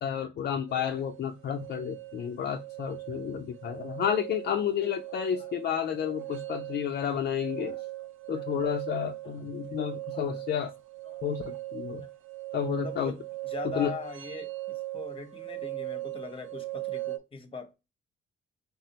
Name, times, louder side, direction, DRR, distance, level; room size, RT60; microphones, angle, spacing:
voice 1, 0.0-7.7 8.3-10.7 11.2-12.0 12.5-13.1 13.8-13.9, left 9 dB, 55° left, 0.4 m, -31 dB
sound 1, 0.7-17.2, right 18 dB, 85° right, 0.4 m, -39 dB
voice 2, 10.1-10.7 11.1-11.2 12.8-17.7, left 4 dB, 25° left, 0.8 m, -42 dB
3.5 x 2.0 x 2.8 m
cardioid pair, 90°, 20 cm